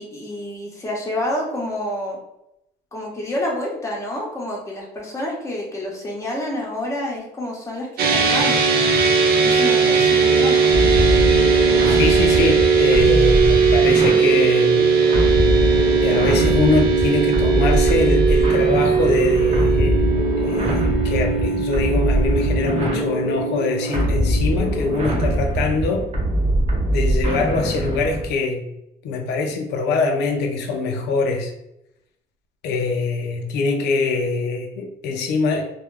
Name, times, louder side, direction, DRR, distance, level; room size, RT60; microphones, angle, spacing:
voice 1, 0.0-2.2 2.9-8.6 9.4-10.7, left 1 dB, 15° left, -3 dB, 0.8 m, -28 dB
sound 1, 8.0-25.4, right 5 dB, 65° right, 0.6 m, -19 dB
sound 2, 10.7-28.3, right 1 dB, 40° right, 0.9 m, -22 dB
voice 2, 11.8-15.0 16.0-26.1 26.9-28.6 29.0-31.5 32.6-35.6, left 4 dB, 80° left, 3 dB, 0.4 m, -23 dB
2.1 x 2.1 x 3.2 m, 0.84 s
cardioid pair, 110°, 17 cm